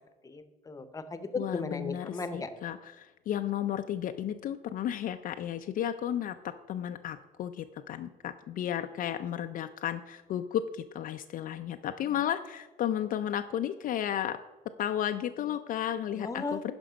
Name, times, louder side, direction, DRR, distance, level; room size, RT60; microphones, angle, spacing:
voice 1, 0.2-2.5 16.2-16.6, left 3 dB, 20° left, 11 dB, 0.8 m, -36 dB
voice 2, 1.3-14.4 14.8-16.7, left 10 dB, 55° left, 7 dB, 0.4 m, -33 dB
11.0 x 5.3 x 5.1 m, 1.2 s
cardioid pair, 110°, 17 cm